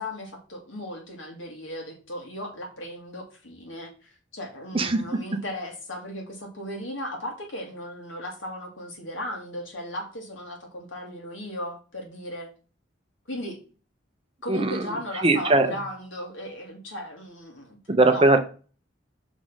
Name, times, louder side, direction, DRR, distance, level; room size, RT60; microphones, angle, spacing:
voice 1, 0.0-12.5 13.3-13.6 14.4-17.8 18.1-18.3, equal, 85° left, 1 dB, 2.5 m, -36 dB
voice 2, 14.5-14.9 15.2-15.7 17.9-18.4, right 2 dB, 30° right, 6 dB, 0.9 m, -20 dB
6.2 x 3.8 x 5.7 m, 0.36 s
head